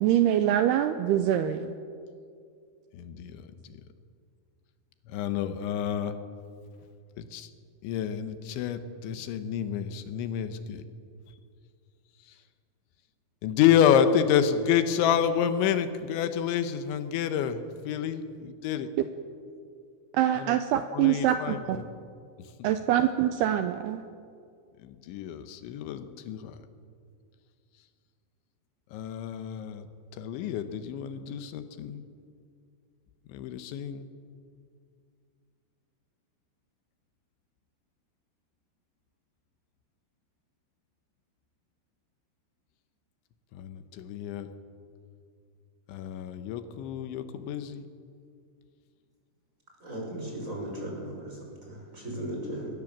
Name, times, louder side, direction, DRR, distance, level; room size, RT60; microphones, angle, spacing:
voice 1, 0.0-1.8 20.1-21.8 22.6-24.0, right 11 dB, 80° right, 9 dB, 2.5 m, -24 dB
voice 2, 2.9-3.8 5.1-6.2 7.2-7.5 7.8-10.9 13.4-18.9 20.4-20.6 20.9-21.8 22.6-22.7 24.8-26.6 28.9-29.9 30.1-32.0 33.3-34.1 43.5-44.5 45.9-47.9, left 8 dB, 90° left, 9 dB, 3.5 m, -29 dB
voice 3, 49.8-51.4 51.7-52.7, right 1 dB, 15° right, -1 dB, 6.0 m, -36 dB
22.0 x 20.5 x 7.4 m, 2.3 s
omnidirectional pair, 5.2 m